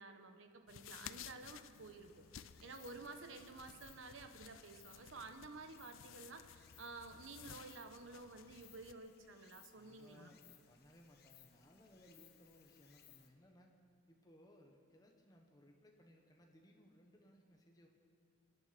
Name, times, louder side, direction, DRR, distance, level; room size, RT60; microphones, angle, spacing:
voice 1, 0.0-10.3, right 3 dB, 80° right, 7 dB, 1.2 m, -53 dB
sound 1, 0.7-8.9, left 9 dB, 85° left, 0.5 m, -56 dB
Stream, 1.7-13.3, left 9 dB, 50° left, 1.2 m, -67 dB
voice 2, 9.7-13.7 14.1-17.9, equal, 20° left, 1 dB, 1.3 m, -64 dB
25.0 x 9.6 x 6.0 m, 2.2 s
head